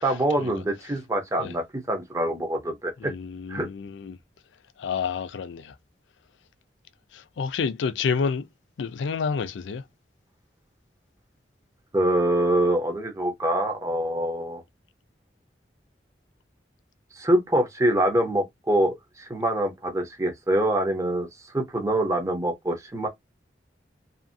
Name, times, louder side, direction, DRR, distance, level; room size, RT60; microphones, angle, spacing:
voice 1, 0.0-3.1 3.5-3.7 11.9-14.6 17.1-21.3 21.5-23.1, right 1 dB, 15° right, 0.8 m, -25 dB
voice 2, 3.0-4.2 4.8-5.7 7.1-8.5 8.8-9.8, left 5 dB, 90° left, 0.4 m, -29 dB
2.7 x 2.6 x 2.6 m
head